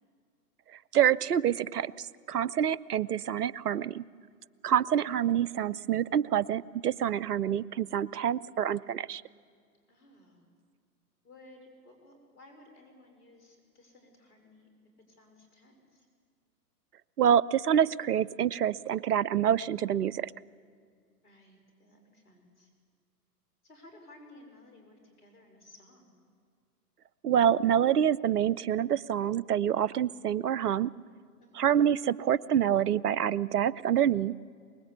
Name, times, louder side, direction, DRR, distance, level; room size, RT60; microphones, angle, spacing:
voice 1, 0.9-4.0 4.6-9.2 17.2-20.3 27.2-30.9 31.6-34.4, right 9 dB, 75° right, 22 dB, 0.7 m, -27 dB
voice 2, 9.9-10.5 11.2-14.7 15.1-16.1 21.2-22.7 23.6-26.2 31.4-31.7, left 2 dB, 70° left, 4 dB, 5.7 m, -56 dB
24.0 x 21.5 x 8.3 m, 2.1 s
figure-of-eight pair, 110°, 47 cm